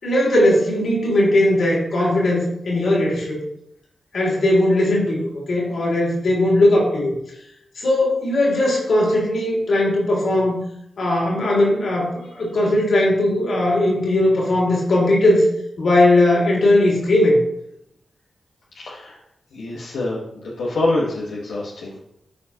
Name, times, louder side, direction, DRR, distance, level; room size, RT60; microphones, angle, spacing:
voice 1, 0.0-3.4 4.1-7.1 7.8-10.6 11.0-15.5 15.8-17.4, left 1 dB, 75° left, -4 dB, 3.2 m, -18 dB
voice 2, 18.7-19.2 19.5-22.0, left 2 dB, 90° left, -5 dB, 1.3 m, -26 dB
13.0 x 4.6 x 2.9 m, 0.78 s
cardioid pair, 50°, 0 cm